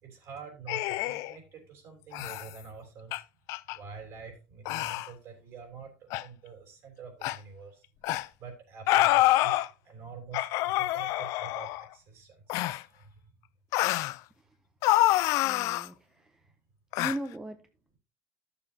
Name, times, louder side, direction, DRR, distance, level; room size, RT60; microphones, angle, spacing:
voice 1, 0.0-3.2 3.7-7.8 8.4-13.3, right 6 dB, 50° right, 3 dB, 3.4 m, -47 dB
sound 1, 0.7-1.3 2.1-2.5 3.1-3.2 3.5-3.8 4.7-5.1 6.1-6.2 7.2-7.4 8.0-8.3 8.9-9.7 10.3-11.8 12.5-12.8 13.7-14.2 14.8-15.9 16.9-17.2, left 17 dB, 60° left, 0.4 m, -26 dB
voice 2, 15.4-16.4 17.0-17.6, right 1 dB, 10° right, 7 dB, 0.6 m, -38 dB
12.5 x 6.9 x 2.8 m, 0.31 s
cardioid pair, 145°, 6 cm